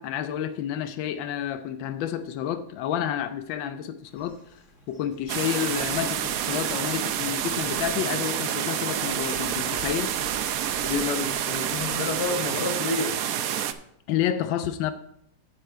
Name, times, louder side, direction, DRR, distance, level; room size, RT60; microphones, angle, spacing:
voice 1, 0.0-10.1 14.1-14.9, left 10 dB, 90° left, 1.4 m, -30 dB
sound 1, 4.0-12.3, left 3 dB, 40° left, 1.8 m, -49 dB
sound 2, 5.3-13.7, right 10 dB, 70° right, 0.8 m, -28 dB
voice 2, 10.8-13.2, left 4 dB, 60° left, 1.5 m, -29 dB
8.9 x 7.4 x 4.5 m
omnidirectional pair, 2.0 m